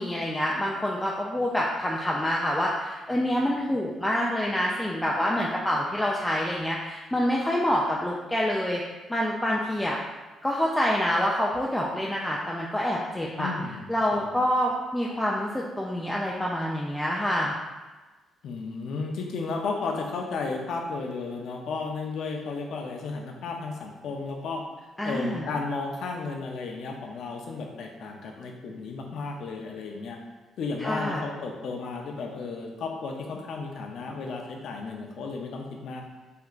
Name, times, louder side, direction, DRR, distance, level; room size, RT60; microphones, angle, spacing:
voice 1, 0.0-8.8 9.1-10.0 10.4-13.5 13.9-17.5 25.0-25.5 30.8-31.3, equal, 10° left, -3 dB, 0.3 m, -27 dB
voice 2, 13.4-13.8 14.1-14.3 18.4-24.6 25.0-30.2 30.6-36.0, left 4 dB, 70° left, 2 dB, 0.5 m, -33 dB
3.3 x 2.8 x 2.4 m, 1.2 s
cardioid pair, 90°, 0 cm